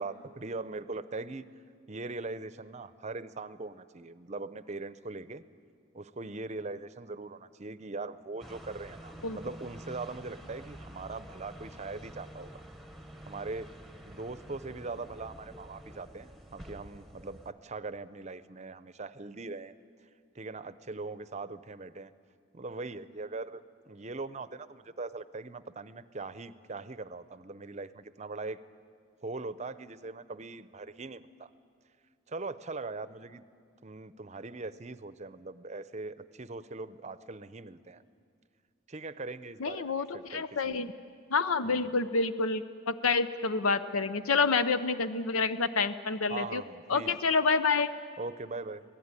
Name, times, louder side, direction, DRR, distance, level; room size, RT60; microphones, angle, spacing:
voice 1, 0.0-1.5 1.9-5.4 5.9-12.6 13.3-13.7 14.1-19.7 20.3-22.1 22.5-28.6 29.2-31.5 32.3-33.4 33.8-38.0 38.9-40.9 41.6-42.0 46.3-47.2 48.2-48.8, right 3 dB, 35° right, 14 dB, 0.7 m, -41 dB
sound 1, 8.4-17.5, right 1 dB, ahead, 1.1 m, -48 dB
voice 2, 39.6-40.9 41.3-46.6 46.9-47.9, left 4 dB, 85° left, 12 dB, 0.7 m, -28 dB
26.0 x 18.0 x 9.8 m, 2.2 s
head